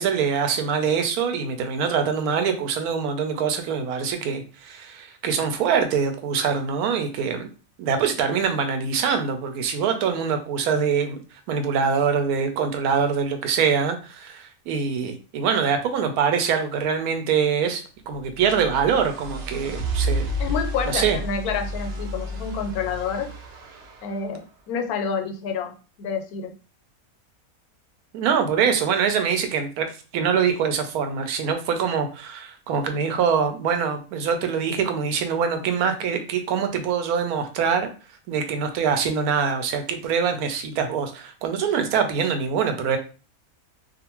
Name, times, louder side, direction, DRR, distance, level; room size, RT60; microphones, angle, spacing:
voice 1, 0.0-7.5 7.8-11.2 11.5-20.3 20.9-21.2 28.1-29.9 30.1-37.9 38.3-43.0, right 6 dB, 85° right, 7 dB, 1.1 m, -24 dB
sound 1, 18.2-24.2, right 1 dB, 65° right, 0.7 m, -31 dB
voice 2, 20.4-23.3 24.0-25.7 26.0-26.5, left 5 dB, 90° left, 5 dB, 1.1 m, -28 dB
2.5 x 2.4 x 2.9 m, 0.36 s
omnidirectional pair, 1.5 m